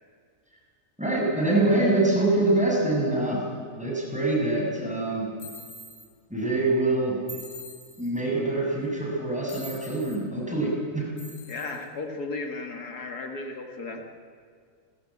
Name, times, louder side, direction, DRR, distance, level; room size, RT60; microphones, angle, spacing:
voice 1, 1.0-3.4 3.8-5.3 6.3-7.2 8.0-11.0, right 2 dB, 5° right, -3 dB, 6.6 m, -24 dB
sound 1, 5.4-6.1 7.3-8.2 9.5-10.2 11.2-11.8, equal, 50° left, 3.3 m, -44 dB
voice 2, 11.5-14.0, left 3 dB, 80° left, 4 dB, 2.4 m, -35 dB
30.0 x 14.5 x 8.6 m, 2.1 s
omnidirectional pair, 1.7 m